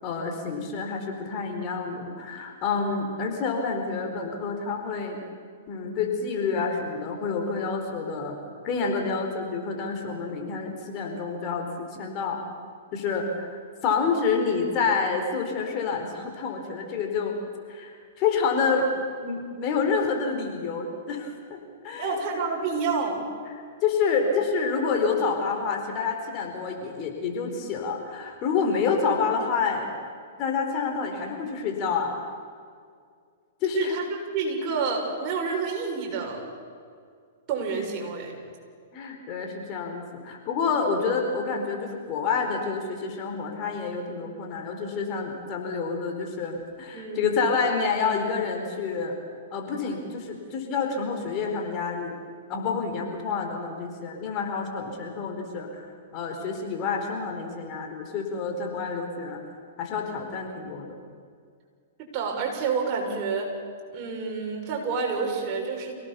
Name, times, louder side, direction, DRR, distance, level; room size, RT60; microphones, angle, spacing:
voice 1, 0.0-5.2 5.7-8.4 8.6-12.4 12.9-17.4 17.7-18.9 19.2-22.2 23.8-29.9 30.4-32.2 33.6-33.9 38.9-49.1 49.5-52.2 52.5-55.9 56.1-59.4 59.8-61.0, left 5 dB, 40° left, 3 dB, 4.4 m, -28 dB
voice 2, 22.0-23.2 33.7-34.0 34.3-36.5 37.5-38.3 46.9-47.3 62.1-63.5 63.9-65.9, right 5 dB, 40° right, 0 dB, 6.4 m, -28 dB
28.0 x 18.0 x 7.1 m, 2.1 s
hypercardioid pair, 125°, 0 cm